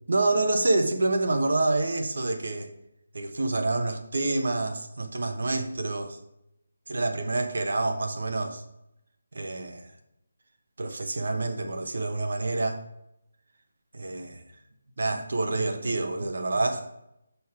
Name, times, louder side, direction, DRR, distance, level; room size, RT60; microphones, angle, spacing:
voice 1, 0.1-2.7 3.1-6.2 6.9-8.6 9.3-9.8 10.8-12.8 13.9-14.4 15.0-16.9, right 2 dB, 60° right, 5 dB, 1.1 m, -27 dB
5.9 x 5.6 x 4.8 m, 0.83 s
hypercardioid pair, 175°, 0 cm